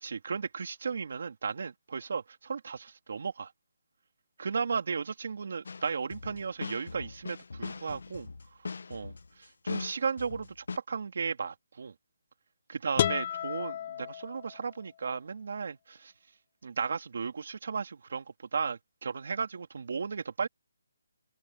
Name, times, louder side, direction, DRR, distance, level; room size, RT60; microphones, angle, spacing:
voice 1, 0.0-3.5 4.4-8.3 8.9-9.1 9.4-11.9 12.7-16.1 16.6-20.5, right 5 dB, 55° right, 2.7 m, -35 dB
sound 1, 5.7-10.8, left 4 dB, 70° left, 1.6 m, -40 dB
sound 2, 13.0-14.9, left 10 dB, 30° left, 0.4 m, -32 dB
hypercardioid pair, 170°, 0 cm